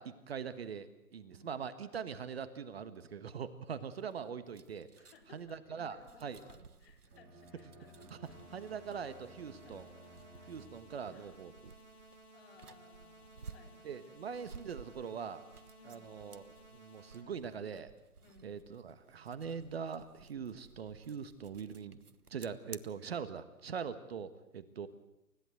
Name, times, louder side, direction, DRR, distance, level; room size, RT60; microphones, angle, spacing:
voice 1, 0.0-4.9 5.3-6.4 8.5-9.9 10.5-11.7 13.8-15.4 15.8-17.9 18.4-22.0 22.3-24.9, right 6 dB, 45° right, 12 dB, 1.4 m, -42 dB
sound 1, 4.0-22.8, right 5 dB, 85° right, 1.3 m, -57 dB
voice 2, 5.0-8.6 9.6-9.8 10.3-10.5 11.1-11.3 12.0-13.7 14.0-14.1 15.8-16.0 18.2-18.6 24.8-24.9, left 5 dB, 40° left, 3 dB, 4.7 m, -62 dB
Bowed string instrument, 7.0-11.1, equal, 15° right, 3.0 m, -57 dB
sound 2, 8.2-17.2, right 1 dB, 85° left, 7.0 m, -59 dB
29.0 x 15.5 x 8.0 m, 0.90 s
figure-of-eight pair, 140°, 44 cm